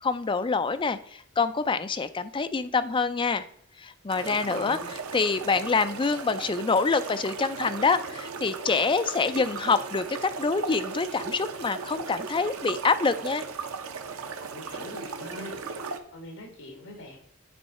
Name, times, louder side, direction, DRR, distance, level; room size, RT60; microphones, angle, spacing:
voice 1, 0.0-3.4 3.8-13.4, left 4 dB, 25° left, 10 dB, 0.4 m, -26 dB
sound 1, 4.1-16.0, right 5 dB, 75° right, 0.7 m, -37 dB
voice 2, 4.2-4.9 14.5-17.2, left 1 dB, 65° left, 2 dB, 2.1 m, -42 dB
9.3 x 3.6 x 4.2 m, 0.68 s
head